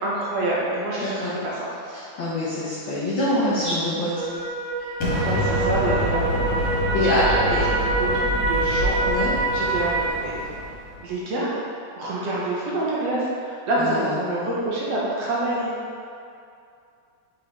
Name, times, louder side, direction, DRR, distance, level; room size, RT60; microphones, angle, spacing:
voice 1, 0.0-1.7 5.2-6.7 6.9-7.7 8.0-8.1 8.5-9.0 9.5-10.3 11.0-11.5 12.0-15.7, right 2 dB, 65° right, -6 dB, 1.8 m, -27 dB
voice 2, 1.0-1.3 1.9-4.1 6.9-7.2 7.5-7.6 9.0-9.3 13.8-14.5, left 2 dB, 85° left, -8 dB, 1.0 m, -25 dB
sound 1, 4.2-10.1, right 3 dB, 90° right, 2.2 m, -26 dB
Explosion, 5.0-11.0, left 1 dB, 50° left, 2.1 m, -27 dB
5.8 x 5.0 x 3.5 m, 2.5 s
omnidirectional pair, 3.5 m